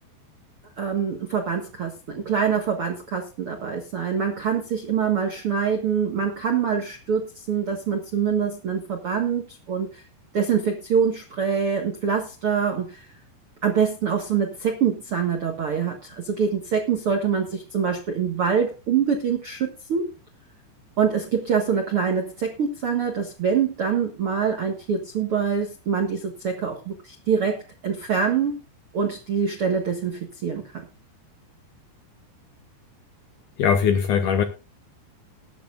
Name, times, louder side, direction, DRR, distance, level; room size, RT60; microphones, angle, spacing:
voice 1, 0.8-10.0 10.3-13.1 13.6-20.1 21.0-28.6 28.9-30.8, right 6 dB, 75° right, 3 dB, 1.2 m, -25 dB
voice 2, 33.6-34.4, left 7 dB, 80° left, 7 dB, 1.8 m, -20 dB
19.0 x 10.0 x 2.5 m, 0.28 s
omnidirectional pair, 5.1 m